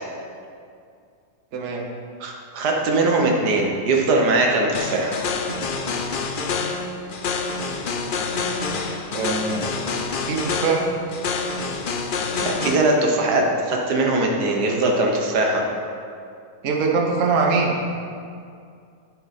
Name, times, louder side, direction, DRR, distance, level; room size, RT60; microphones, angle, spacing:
voice 1, 1.5-1.8 9.1-9.7 10.3-10.9 16.6-17.8, right 4 dB, 55° right, 0 dB, 1.3 m, -22 dB
voice 2, 2.2-5.2 12.4-15.6, right 2 dB, 80° right, 1 dB, 1.7 m, -21 dB
sound 1, 4.7-12.8, left 4 dB, 60° left, 0.5 m, -27 dB
10.5 x 7.4 x 4.2 m, 2.4 s
omnidirectional pair, 1.7 m